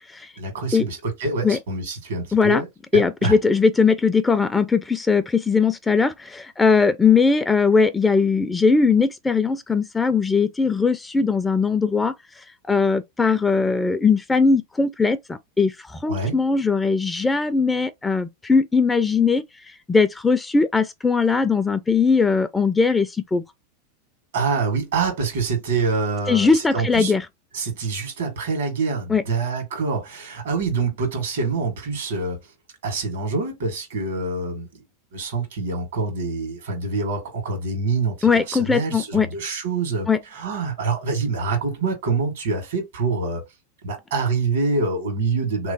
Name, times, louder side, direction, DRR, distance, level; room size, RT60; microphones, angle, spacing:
voice 1, 0.4-2.7 2.9-3.4 16.1-16.3 24.3-27.1 27.5-32.4 32.8-34.8 35.1-43.4 43.8-45.7, right 4 dB, 80° right, 1.6 m, -26 dB
voice 2, 2.3-2.6 2.9-12.1 12.7-19.4 19.9-23.4 26.3-27.2 29.1-29.2 38.2-39.3 40.1-40.2, left 5 dB, 15° left, 0.4 m, -19 dB
3.2 x 3.0 x 2.7 m
hypercardioid pair, 95°, 0 cm